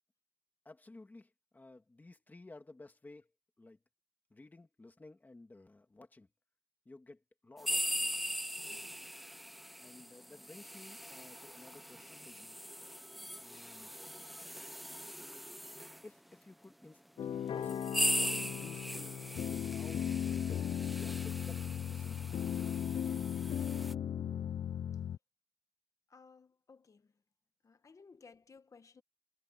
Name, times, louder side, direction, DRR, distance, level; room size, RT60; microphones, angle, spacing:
voice 1, 0.6-3.3 3.6-3.8 4.3-6.3 6.9-9.1 9.8-12.6 13.3-13.9 16.0-20.6 20.9-22.3, left 2 dB, 20° left, 2.2 m, -55 dB
sound 1, 7.6-16.0 16.8-16.9 17.6-23.9, equal, ahead, 0.7 m, -40 dB
sound 2, 17.2-25.2, left 9 dB, 70° left, 0.4 m, -37 dB
voice 2, 26.1-27.1 27.6-29.0, left 5 dB, 35° left, 1.2 m, -59 dB
wide cardioid pair, 175°, 9 cm